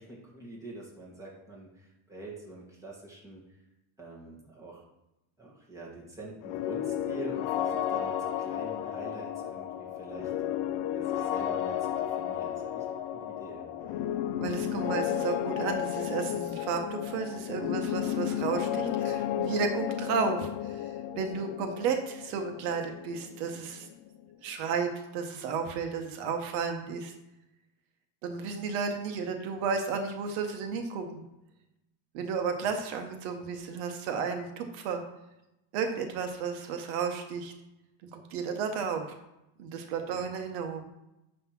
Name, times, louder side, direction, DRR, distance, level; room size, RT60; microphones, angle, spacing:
voice 1, 0.0-3.4 4.0-4.8 5.4-10.3 10.9-12.8 13.1-13.7 40.1-40.2, right 2 dB, 5° right, -4 dB, 1.9 m, -45 dB
sound 1, 6.4-24.1, left 10 dB, 65° left, 0.7 m, -33 dB
voice 2, 14.4-23.9 24.4-27.1 28.2-31.2 32.1-35.0 35.7-37.5 38.1-39.0 39.6-40.8, right 5 dB, 75° right, 5 dB, 1.2 m, -33 dB
9.5 x 3.3 x 5.9 m, 0.92 s
cardioid pair, 155°, 50 cm